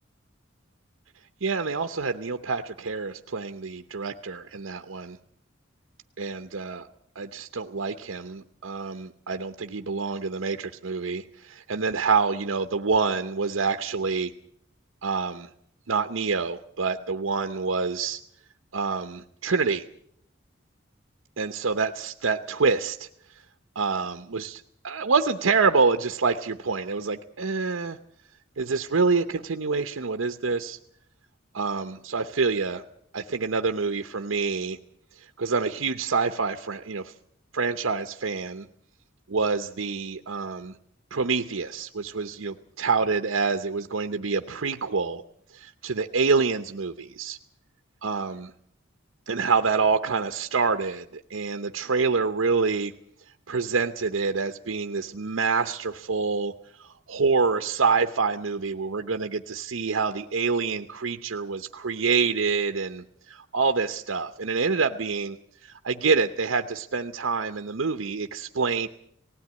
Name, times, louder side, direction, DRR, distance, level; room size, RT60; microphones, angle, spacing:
voice 1, 1.4-5.2 6.2-6.9 7.2-14.3 15.0-15.5 15.9-18.2 18.7-19.8 21.4-23.1 23.8-28.0 28.6-30.8 31.5-32.8 33.1-34.8 35.1-37.1 37.5-38.7 39.3-40.8 41.1-45.2 45.5-47.4 48.0-48.5 49.3-52.9 53.5-56.5 56.8-68.9, right 4 dB, 85° right, 7 dB, 0.8 m, -27 dB
19.0 x 16.5 x 9.5 m, 0.72 s
head